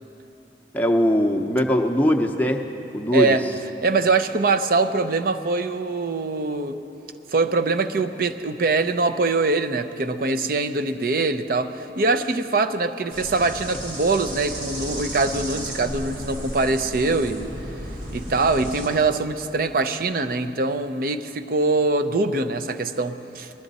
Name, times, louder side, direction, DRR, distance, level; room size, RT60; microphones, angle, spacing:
voice 1, 0.7-2.6 2.9-3.4, equal, 10° left, 2 dB, 0.7 m, -20 dB
voice 2, 3.1-3.5 3.8-6.8 7.3-17.5 18.1-23.5, right 3 dB, 55° right, 8 dB, 0.5 m, -23 dB
sound 1, 13.1-18.9, right 1 dB, 85° right, 3.6 m, -34 dB
20.5 x 12.5 x 4.1 m, 2.9 s
head